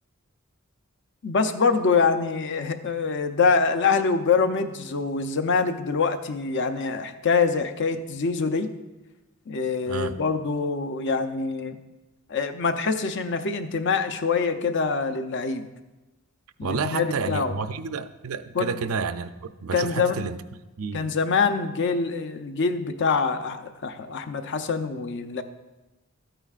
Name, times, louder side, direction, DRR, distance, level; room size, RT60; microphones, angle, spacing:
voice 1, 1.2-8.7 9.5-11.8 12.3-15.7 16.6-17.6 18.5-18.7 19.7-20.2 20.9-25.4, left 5 dB, 60° left, 0.6 m, -25 dB
voice 2, 9.9-10.2 16.6-20.4 20.8-21.1, right 5 dB, 85° right, 0.5 m, -30 dB
13.0 x 9.0 x 2.4 m
head